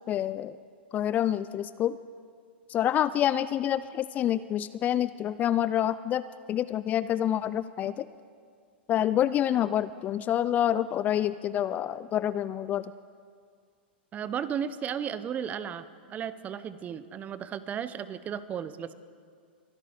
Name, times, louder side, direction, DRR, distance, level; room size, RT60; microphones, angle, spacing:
voice 1, 0.1-0.6 0.9-2.0 2.7-6.2 6.5-8.1 8.9-12.9, left 11 dB, 25° left, 15 dB, 0.3 m, -27 dB
voice 2, 14.1-18.9, right 8 dB, 25° right, 14 dB, 0.7 m, -34 dB
23.0 x 11.0 x 5.0 m, 2.1 s
hypercardioid pair, 115°, 6 cm